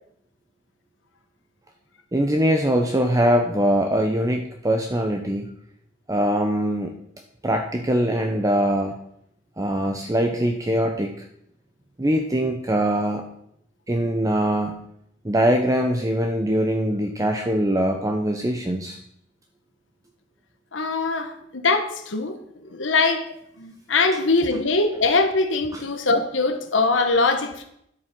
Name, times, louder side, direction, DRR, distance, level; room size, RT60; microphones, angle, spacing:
voice 1, 2.1-5.5 6.1-6.9 7.4-9.0 9.6-11.1 12.0-13.3 13.9-14.9 15.2-19.0 25.7-25.8, equal, 20° right, 4 dB, 0.8 m, -22 dB
voice 2, 20.7-22.4 22.7-23.3 23.6-27.6, left 3 dB, 85° left, 6 dB, 1.3 m, -22 dB
10.5 x 8.3 x 6.1 m, 0.74 s
head